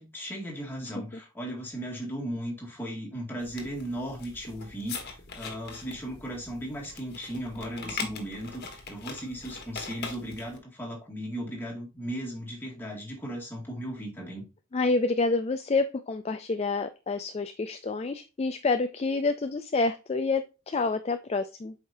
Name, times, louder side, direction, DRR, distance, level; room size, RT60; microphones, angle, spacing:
voice 1, 0.0-14.4, equal, 10° left, -2 dB, 2.1 m, -36 dB
sound 1, 3.4-10.6, left 4 dB, 45° left, 1.5 m, -41 dB
voice 2, 14.7-21.7, left 3 dB, 30° left, 9 dB, 0.3 m, -28 dB
7.8 x 5.0 x 2.7 m, 0.30 s
head